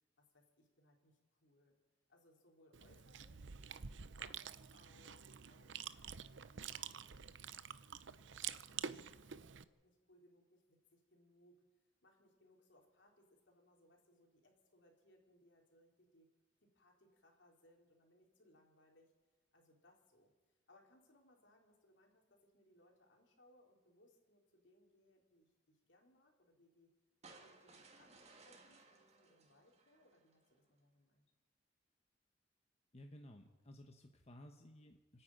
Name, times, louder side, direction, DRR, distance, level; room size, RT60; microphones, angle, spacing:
voice 1, 0.2-1.8 2.1-3.6 4.2-7.0 7.3-11.6 12.0-16.3 16.6-19.1 19.5-20.3 20.7-26.9 27.4-31.2, left 1 dB, 70° left, 1 dB, 4.0 m, -70 dB
Chewing mastication, 2.7-9.6, right 8 dB, 70° right, 0.7 m, -48 dB
sound 1, 27.2-30.5, right 3 dB, 35° right, 2.4 m, -62 dB
voice 2, 32.9-35.2, left 1 dB, 35° left, 4 dB, 1.2 m, -57 dB
28.5 x 9.9 x 9.2 m, 1.2 s
head